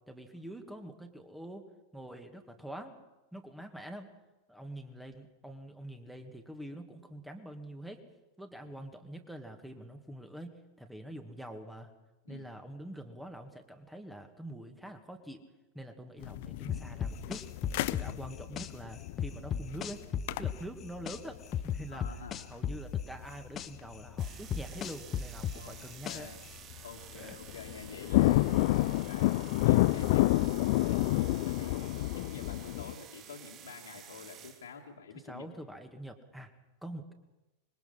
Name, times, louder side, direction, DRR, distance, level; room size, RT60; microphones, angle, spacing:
voice 1, 0.1-3.0 3.3-4.1 4.5-8.0 8.4-12.0 12.3-15.5 15.7-17.4 17.9-20.0 20.4-22.2 22.5-26.3 27.1-27.4 35.2-36.5 36.8-37.1, right 1 dB, 5° right, 6 dB, 2.1 m, -45 dB
sound 1, 16.2-24.2 24.5-24.6 25.2-25.6 25.9-26.3 26.7-26.8 27.1-32.9, left 18 dB, 50° left, 0.6 m, -29 dB
sound 2, 16.7-18.7 19.2-21.2 21.5-23.7 24.2-26.4, left 8 dB, 30° left, 1.0 m, -34 dB
voice 2, 21.9-22.5 25.5-26.4 26.8-35.5, left 5 dB, 65° left, -1 dB, 2.4 m, -48 dB
sound 3, 24.2-34.7, right 9 dB, 30° right, 1.4 m, -51 dB
25.5 x 21.5 x 5.7 m, 1.1 s
figure-of-eight pair, 90°, 0 cm